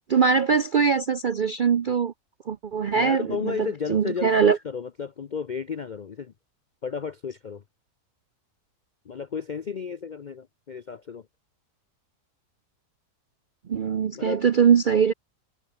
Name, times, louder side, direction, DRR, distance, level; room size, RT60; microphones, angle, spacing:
voice 1, 0.1-2.1 2.5-4.6 13.7-15.1, right 6 dB, 60° right, 0.5 m, -22 dB
voice 2, 3.0-6.3 6.8-7.6 9.1-11.2 14.1-14.4, left 6 dB, 60° left, 0.5 m, -33 dB
omnidirectional pair, 1.6 m